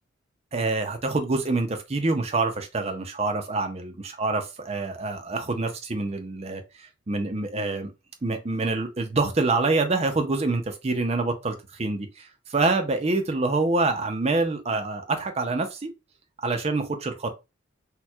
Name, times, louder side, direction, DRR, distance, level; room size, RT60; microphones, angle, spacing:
voice 1, 0.5-7.9 8.2-15.9 16.4-17.3, right 3 dB, 30° right, 0.5 m, -26 dB
4.3 x 2.2 x 2.3 m
head